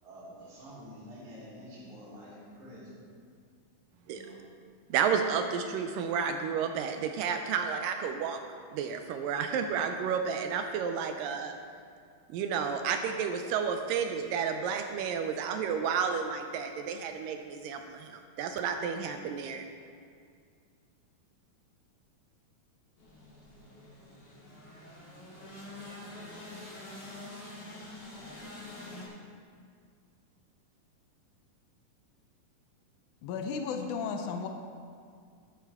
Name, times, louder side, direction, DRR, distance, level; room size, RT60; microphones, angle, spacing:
voice 1, 0.0-3.0 4.0-4.4, equal, 55° right, -8 dB, 4.7 m, -48 dB
voice 2, 4.9-8.4 8.7-11.5 12.3-19.7, right 6 dB, 80° right, 6 dB, 2.0 m, -31 dB
sound 1, 23.0-29.1, left 2 dB, 35° left, 3.5 m, -46 dB
voice 3, 33.2-34.5, left 5 dB, 85° left, 5 dB, 1.7 m, -34 dB
12.5 x 11.5 x 3.5 m, 2.2 s
omnidirectional pair, 4.4 m